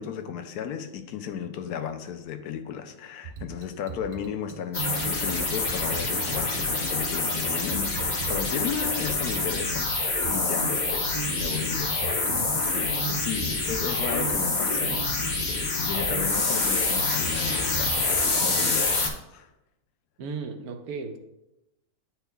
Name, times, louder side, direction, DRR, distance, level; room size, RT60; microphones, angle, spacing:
voice 1, 0.0-19.5, left 8 dB, 85° left, 8 dB, 1.1 m, -35 dB
sound 1, 3.2-18.6, right 7 dB, 40° right, 0.7 m, -38 dB
sound 2, 4.7-19.1, left 3 dB, 40° left, 0.7 m, -26 dB
voice 2, 20.2-21.2, right 4 dB, 75° right, 7 dB, 1.1 m, -35 dB
9.9 x 4.4 x 2.2 m, 0.91 s
omnidirectional pair, 1.6 m